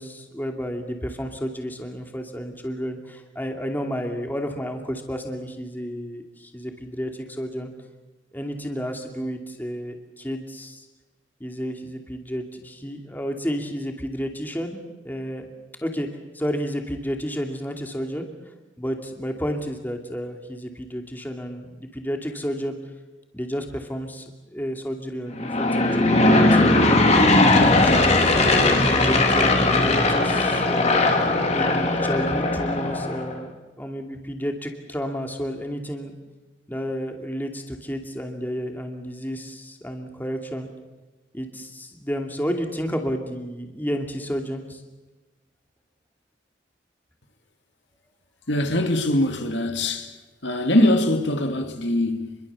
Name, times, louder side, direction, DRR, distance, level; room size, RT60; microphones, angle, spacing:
voice 1, 0.0-7.7 8.3-10.8 11.4-15.5 15.8-16.1 16.3-18.3 18.8-22.8 23.3-26.8 27.3-31.1 31.5-36.1 36.7-40.7 41.3-44.8, equal, 10° left, 2.6 m, -31 dB
Aircraft / Engine, 25.3-33.3, left 2 dB, 35° left, 3.1 m, -19 dB
voice 2, 48.5-50.2 50.4-52.4, left 1 dB, 70° left, 2.4 m, -22 dB
28.5 x 23.0 x 7.0 m
head